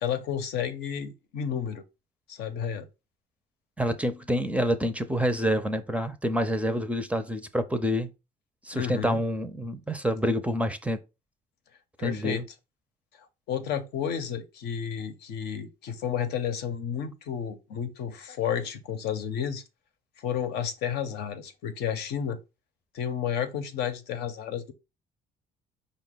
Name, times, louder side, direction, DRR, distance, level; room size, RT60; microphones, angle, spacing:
voice 1, 0.0-1.8 2.3-2.9 8.7-9.2 12.0-12.4 13.5-19.6 20.2-22.4 22.9-24.7, left 8 dB, 75° left, 0.8 m, -31 dB
voice 2, 3.8-8.1 8.6-11.0 12.0-12.4, equal, 10° right, 0.4 m, -27 dB
5.1 x 2.2 x 3.8 m
cardioid pair, 110°, 17 cm